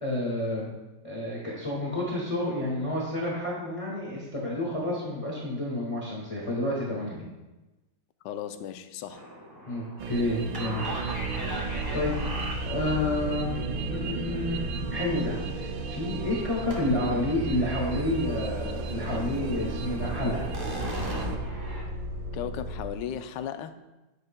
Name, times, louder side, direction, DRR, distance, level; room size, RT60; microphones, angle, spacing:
voice 1, 0.0-0.7 1.0-7.3 9.7-10.9 11.1-11.4 11.9-14.6 14.9-20.5, left 1 dB, 20° left, -4 dB, 1.4 m, -30 dB
voice 2, 8.2-9.2 22.3-23.7, left 9 dB, 80° left, 9 dB, 1.2 m, -35 dB
sound 1, 9.1-13.0 16.7-17.2 17.5-18.1 18.5-18.6 19.0-21.8, right 1 dB, 15° right, 1.4 m, -39 dB
sound 2, 10.0-21.4, right 4 dB, 90° right, 1.3 m, -35 dB
sound 3, 11.0-22.9, right 1 dB, 45° right, 1.0 m, -37 dB
9.6 x 7.8 x 2.2 m, 1.1 s
omnidirectional pair, 2.0 m